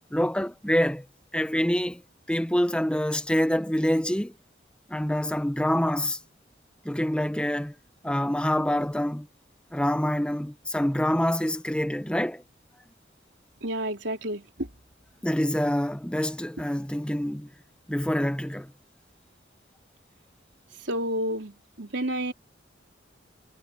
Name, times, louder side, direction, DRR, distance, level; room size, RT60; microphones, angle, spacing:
voice 1, 0.1-1.0 1.3-2.0 2.3-4.3 4.9-6.2 6.8-7.7 8.0-9.3 9.7-12.4 15.2-17.5 17.9-18.7, equal, 5° left, 0.9 m, -26 dB
voice 2, 13.6-14.7 20.8-22.3, right 1 dB, 85° right, 3.4 m, -30 dB
head